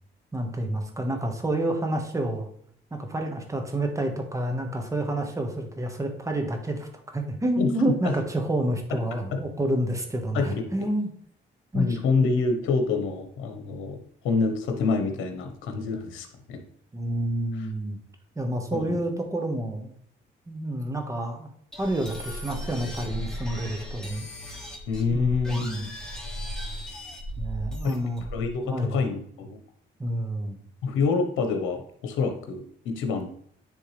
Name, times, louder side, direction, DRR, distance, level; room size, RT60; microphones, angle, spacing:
voice 1, 0.3-2.5 2.9-6.9 7.1-11.1 11.7-12.0 16.9-18.0 18.3-19.9 20.5-21.5 21.8-24.3 25.1-25.9 27.4-28.3 28.6-29.0 30.0-30.6, right 1 dB, 15° right, 4 dB, 1.3 m, -29 dB
voice 2, 7.6-8.1 9.3-9.4 10.3-10.6 11.7-14.0 14.2-16.6 18.7-19.0 24.9-25.9 27.8-28.0 28.3-29.6 30.8-33.3, left 4 dB, 85° left, 5 dB, 1.1 m, -27 dB
sound 1, 21.7-28.5, equal, 5° left, 1.8 m, -36 dB
10.0 x 3.4 x 3.3 m, 0.64 s
cardioid pair, 90°, 20 cm